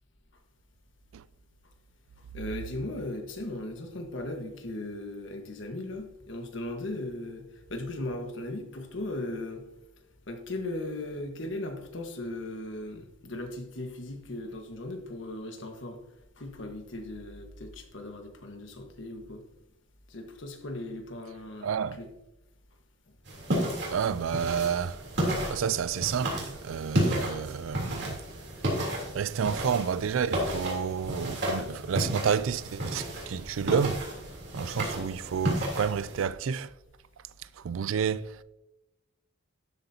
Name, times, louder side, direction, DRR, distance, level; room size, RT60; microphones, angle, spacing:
voice 1, 2.3-9.6 10.3-16.0 16.4-19.4 20.1-22.1, left 1 dB, 65° left, 1.5 m, -37 dB
voice 2, 21.6-22.0 23.9-25.0 25.5-28.2 29.1-34.0 34.5-36.7 37.6-38.4, right 7 dB, 80° right, 0.4 m, -30 dB
sound 1, 23.3-36.3, equal, 60° right, 3.3 m, -32 dB
12.5 x 7.9 x 2.8 m
head